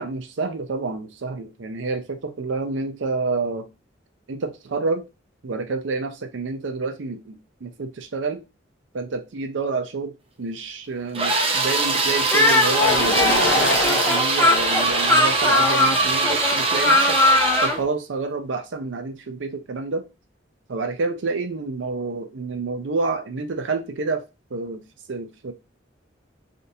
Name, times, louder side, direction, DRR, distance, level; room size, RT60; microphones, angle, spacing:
voice 1, 0.0-3.7 4.3-5.0 5.4-8.4 8.9-10.1 10.4-17.2 17.6-20.0 20.7-24.2 24.5-24.8 25.1-25.5, right 3 dB, 85° right, 0.6 m, -28 dB
sound 1, 11.2-17.8, right 3 dB, 30° right, 0.7 m, -22 dB
Speech, 12.3-17.8, left 2 dB, 15° left, 0.4 m, -20 dB
sound 2, 12.8-16.7, left 2 dB, 85° left, 0.9 m, -26 dB
3.5 x 2.5 x 2.7 m
head